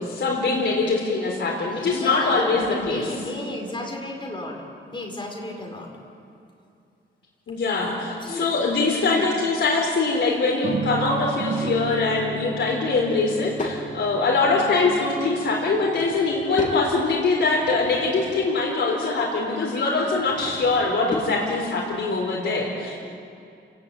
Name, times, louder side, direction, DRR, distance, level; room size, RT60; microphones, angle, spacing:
voice 1, 0.0-3.0 7.5-23.0, left 3 dB, 65° left, -3 dB, 4.5 m, -23 dB
voice 2, 1.6-4.6 4.9-5.9 8.1-8.5 9.1-9.3 14.5-14.8, left 1 dB, 25° left, 0 dB, 4.9 m, -33 dB
sound 1, 10.6-16.5, right 3 dB, 45° right, 1.6 m, -33 dB
Drawer open or close / Wood, 12.9-13.8 15.5-16.9 17.4-18.6 19.9-21.4, left 3 dB, 40° left, 3.0 m, -37 dB
30.0 x 16.5 x 9.3 m, 2.6 s
wide cardioid pair, 140°, 21 cm